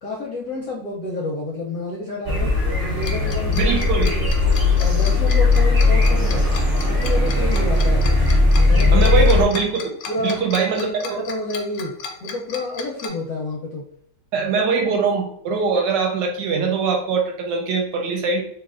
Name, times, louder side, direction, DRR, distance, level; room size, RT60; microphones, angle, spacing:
voice 1, 0.0-3.8 4.1-4.3 4.8-6.4 6.8-8.1 8.6-9.1 9.5-9.6 10.1-10.4 10.8-11.9 12.2-13.8, left 2 dB, 70° left, -2 dB, 0.8 m, -29 dB
sound 1, 2.2-9.4, left 3 dB, 55° right, 0.5 m, -18 dB
Tick-tock, 3.0-13.1, left 6 dB, 85° left, 1.3 m, -34 dB
voice 2, 3.5-4.1 8.9-9.9 10.2-11.2 14.3-18.4, right 5 dB, 75° right, 2 dB, 1.2 m, -22 dB
3.1 x 2.9 x 2.4 m, 0.67 s
omnidirectional pair, 2.0 m